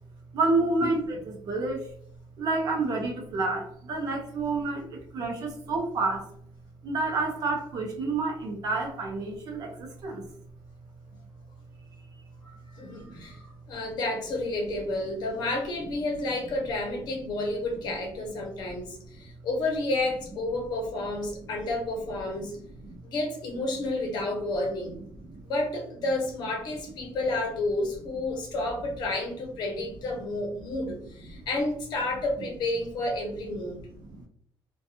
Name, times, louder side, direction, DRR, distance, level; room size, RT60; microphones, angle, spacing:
voice 1, 0.3-1.9 2.4-6.3 6.8-10.2 13.0-13.3 22.8-23.0 25.2-25.4 34.0-34.2, right 3 dB, 45° right, 1 dB, 0.6 m, -29 dB
voice 2, 12.7-22.6 23.0-25.0 25.4-33.9, left 2 dB, 55° left, 2 dB, 0.8 m, -31 dB
2.5 x 2.2 x 2.7 m, 0.65 s
cardioid pair, 175°, 9 cm